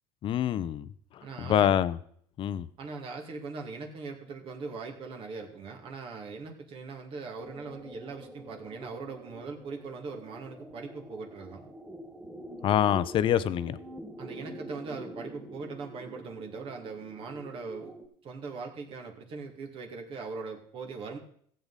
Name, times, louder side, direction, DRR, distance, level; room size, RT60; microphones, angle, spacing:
voice 1, 0.2-0.9 1.5-2.0 2.4-2.7 12.6-13.8, left 10 dB, 45° left, 0.7 m, -25 dB
voice 2, 1.2-1.8 2.8-11.7 14.2-17.9 18.2-21.2, right 4 dB, 50° right, 2.2 m, -40 dB
sound 1, 7.4-18.1, right 1 dB, 5° right, 2.3 m, -46 dB
15.5 x 7.9 x 4.1 m
supercardioid pair, 105°, 12 cm